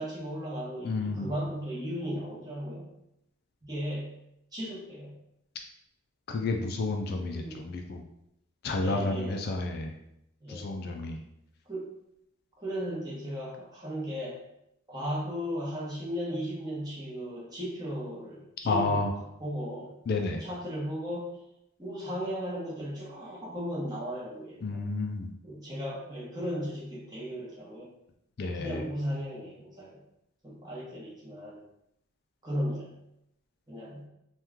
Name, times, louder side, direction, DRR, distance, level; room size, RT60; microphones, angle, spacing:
voice 1, 0.0-2.9 3.6-4.1 4.5-5.1 7.3-7.6 8.8-9.4 10.4-10.7 11.7-11.9 12.6-14.4 14.9-19.0 19.4-19.9 20.4-21.4 21.8-24.8 25.4-27.9 28.5-30.0 30.4-31.6 32.4-32.9 33.7-34.1, equal, 20° right, -7 dB, 0.9 m, -36 dB
voice 2, 0.8-1.3 6.3-8.0 8.6-9.9 10.5-11.2 18.6-19.1 20.1-20.4 24.6-25.3 28.4-28.8, left 3 dB, 50° left, 3 dB, 0.3 m, -30 dB
2.9 x 2.3 x 3.5 m, 0.82 s
head